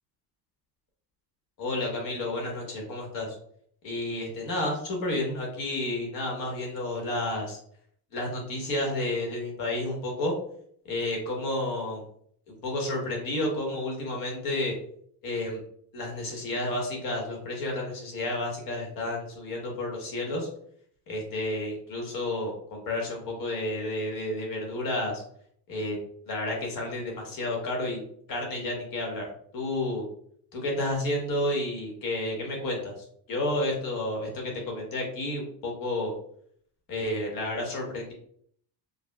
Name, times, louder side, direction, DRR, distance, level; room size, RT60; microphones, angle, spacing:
voice 1, 1.6-3.4 3.8-7.6 8.1-10.3 10.9-12.0 12.5-14.7 15.2-15.6 15.9-20.5 21.1-25.2 25.7-26.0 26.3-28.0 28.3-29.3 29.5-30.0 30.5-36.1 36.9-38.1, left 1 dB, 55° left, -1 dB, 1.3 m, -31 dB
5.0 x 2.2 x 2.2 m, 0.65 s
cardioid pair, 175°, 39 cm